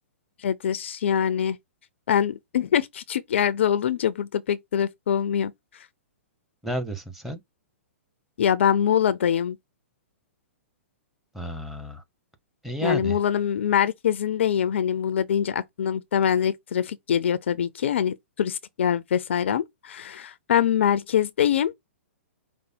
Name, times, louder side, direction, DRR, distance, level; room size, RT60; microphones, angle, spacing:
voice 1, 0.4-1.6 2.1-5.9 8.4-9.6 12.8-21.7, left 9 dB, 60° left, 0.4 m, -24 dB
voice 2, 6.6-7.4 11.3-12.0 12.6-13.2, right 1 dB, 5° right, 0.9 m, -31 dB
5.1 x 2.1 x 4.4 m
figure-of-eight pair, 115°, 7 cm